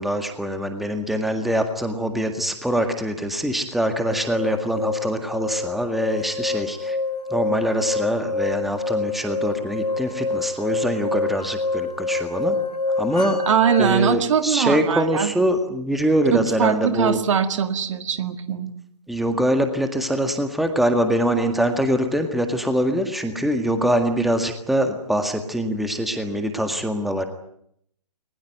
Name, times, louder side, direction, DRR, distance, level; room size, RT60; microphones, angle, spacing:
voice 1, 0.0-7.0 7.3-12.6 13.0-13.4 13.8-17.2 19.1-27.3, equal, ahead, 6 dB, 1.8 m, -23 dB
sound 1, 4.1-13.9, left 3 dB, 90° left, 1.5 m, -27 dB
voice 2, 13.5-15.3 16.3-18.7, right 7 dB, 50° right, 10 dB, 2.0 m, -21 dB
21.5 x 20.5 x 9.4 m, 0.71 s
figure-of-eight pair, 135°, 21 cm